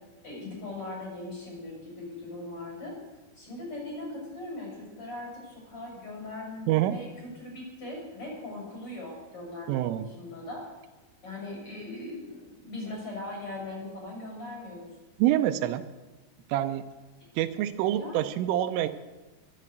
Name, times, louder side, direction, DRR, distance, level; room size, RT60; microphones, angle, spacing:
voice 1, 0.2-3.0 3.4-10.6 11.2-14.9 18.0-18.2, left 2 dB, 25° left, -1 dB, 6.9 m, -40 dB
voice 2, 6.7-7.0 9.7-10.1 15.2-15.8 16.5-16.9 17.4-18.9, right 13 dB, 85° right, 10 dB, 3.2 m, -26 dB
22.0 x 7.7 x 7.8 m, 1.2 s
omnidirectional pair, 5.7 m